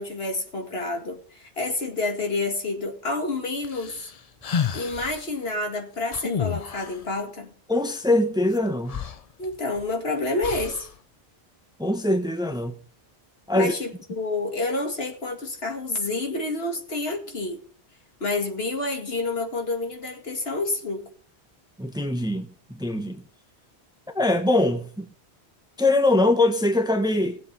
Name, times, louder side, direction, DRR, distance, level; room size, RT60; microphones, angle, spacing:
voice 1, 0.0-4.1 4.7-7.5 9.4-10.9 13.5-17.6 18.2-21.0, left 2 dB, 65° left, 2.4 m, -29 dB
sound 1, 3.6-5.3 6.1-7.0 8.5-8.6 8.9-9.9 10.4-10.9, left 7 dB, 45° left, 0.6 m, -30 dB
voice 2, 7.7-9.1 11.8-12.7 13.5-13.7 21.8-23.2 24.1-25.0 25.8-27.4, left 2 dB, 5° right, 1.1 m, -22 dB
20.5 x 7.6 x 3.4 m
omnidirectional pair, 1.1 m